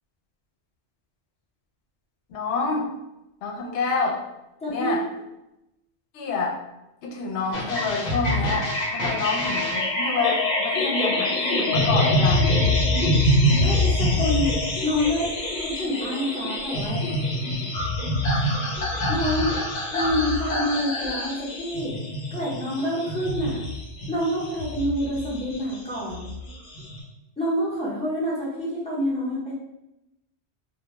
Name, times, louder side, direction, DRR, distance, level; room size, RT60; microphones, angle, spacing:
voice 1, 2.3-2.9 3.4-4.2 4.7-5.0 6.1-6.5 7.0-12.4, left 4 dB, 75° left, 0 dB, 0.8 m, -27 dB
voice 2, 4.6-5.0 13.6-14.5 14.8-15.3 15.6-17.0 18.3-18.6 19.1-19.5 19.9-22.0 22.3-23.6 24.1-26.3 27.4-29.5, equal, 5° left, -7 dB, 0.6 m, -27 dB
sound 1, 7.5-27.0, left 1 dB, 50° left, 0.6 m, -25 dB
2.2 x 2.2 x 2.9 m, 0.91 s
omnidirectional pair, 1.2 m